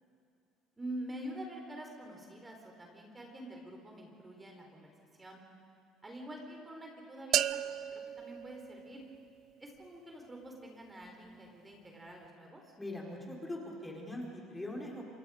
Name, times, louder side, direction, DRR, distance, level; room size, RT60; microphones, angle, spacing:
voice 1, 0.8-4.9 5.2-5.4 6.0-7.5 7.9-9.0 9.6-12.7, right 1 dB, 20° right, 1 dB, 4.3 m, -46 dB
sound 1, 7.3-9.3, right 11 dB, 60° right, 0.5 m, -34 dB
voice 2, 12.8-15.0, left 1 dB, 10° left, -2 dB, 4.6 m, -41 dB
27.0 x 23.0 x 5.2 m, 2.6 s
supercardioid pair, 90°, 0 cm